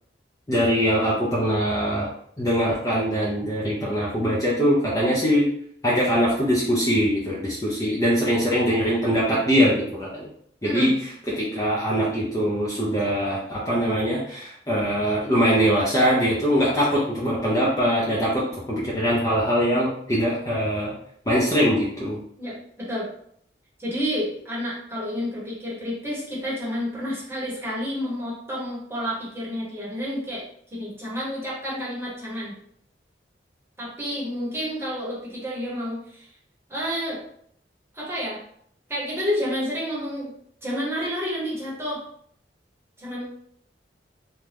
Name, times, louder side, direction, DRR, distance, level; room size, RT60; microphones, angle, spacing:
voice 1, 0.5-2.1 2.4-5.5 5.8-10.3 10.6-10.9 11.4-20.9 21.3-22.2, equal, 20° left, -6 dB, 0.5 m, -22 dB
voice 2, 22.4-23.1 23.8-30.4 30.7-32.6 33.8-36.3 36.7-37.2 37.9-38.4 38.9-40.3 40.6-42.0 43.0-43.3, equal, 15° right, -6 dB, 1.0 m, -29 dB
2.7 x 2.2 x 3.3 m, 0.65 s
head